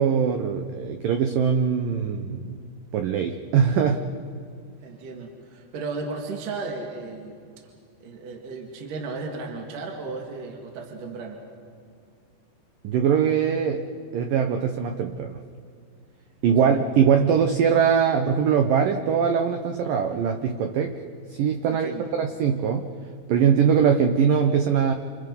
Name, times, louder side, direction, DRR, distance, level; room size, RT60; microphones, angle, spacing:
voice 1, 0.0-2.6 2.9-4.1 12.8-13.8 14.1-15.4 16.4-21.0 21.3-22.9 23.3-24.9, right 7 dB, 80° right, 5 dB, 1.9 m, -22 dB
voice 2, 4.8-7.3 8.0-11.4 16.6-16.8 21.7-22.1, right 3 dB, 55° right, 1 dB, 3.1 m, -35 dB
29.0 x 27.5 x 5.4 m, 2.2 s
omnidirectional pair, 5.4 m